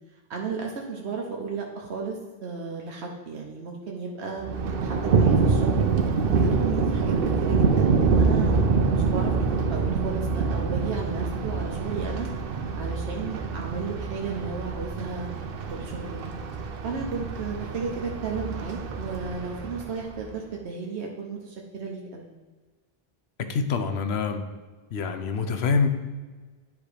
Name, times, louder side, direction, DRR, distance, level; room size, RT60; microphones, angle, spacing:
voice 1, 0.3-4.4 4.8-5.9 6.3-12.3 12.6-15.3 15.7-16.2 16.8-22.3, right 5 dB, 85° right, -1 dB, 1.2 m, -34 dB
Thunder, 4.4-20.3, right 4 dB, 65° right, 0.9 m, -25 dB
voice 2, 23.5-24.4 24.9-25.9, left 5 dB, 75° left, 7 dB, 1.0 m, -25 dB
10.5 x 3.5 x 5.0 m, 1.3 s
omnidirectional pair, 1.1 m